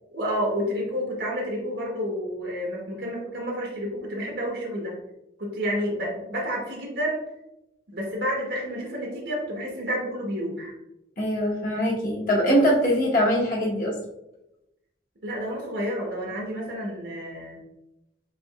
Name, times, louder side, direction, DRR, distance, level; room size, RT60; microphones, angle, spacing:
voice 1, 0.1-5.0 5.4-7.2 7.9-10.7 15.2-17.6, equal, 80° right, -2 dB, 1.2 m, -30 dB
voice 2, 11.2-13.9, equal, 50° left, -3 dB, 1.3 m, -22 dB
4.9 x 4.3 x 2.4 m, 0.89 s
head